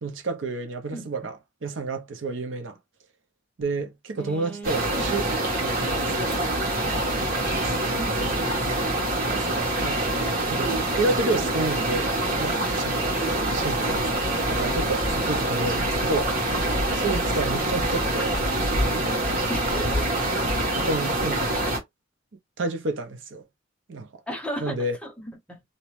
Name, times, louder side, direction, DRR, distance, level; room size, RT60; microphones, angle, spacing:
voice 1, 0.0-2.8 3.6-5.2 5.6-6.4 7.8-8.2 9.2-10.0 10.5-12.1 12.4-13.0 13.5-14.1 14.5-16.3 16.9-18.4 18.7-19.1 20.7-21.5 22.6-23.5 23.9-24.1 24.6-25.0, right 3 dB, 75° right, 0.6 m, -30 dB
voice 2, 0.9-1.3 4.2-5.0 8.0-8.5 13.4-13.7 19.5-20.1 21.6-21.7 24.3-25.6, right 1 dB, 5° left, 0.7 m, -37 dB
sound 1, 4.6-21.8, right 1 dB, 50° right, 1.3 m, -25 dB
2.7 x 2.0 x 3.0 m
head